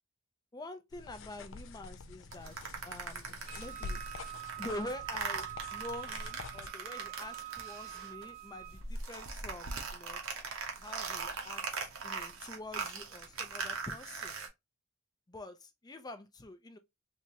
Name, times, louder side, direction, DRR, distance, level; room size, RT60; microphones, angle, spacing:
voice 1, 0.5-2.5 2.8-4.0 4.6-10.2 10.8-11.6 12.0-14.4 15.3-16.8, left 2 dB, 20° left, 0.5 m, -46 dB
sound 1, 0.9-6.7, left 3 dB, 65° left, 0.5 m, -46 dB
sound 2, 2.3-8.3 8.6-14.5, right 5 dB, 70° right, 0.9 m, -41 dB
Wind instrument woodwind instrument, 3.5-8.8, right 14 dB, 40° right, 0.9 m, -45 dB
3.4 x 3.0 x 2.8 m
head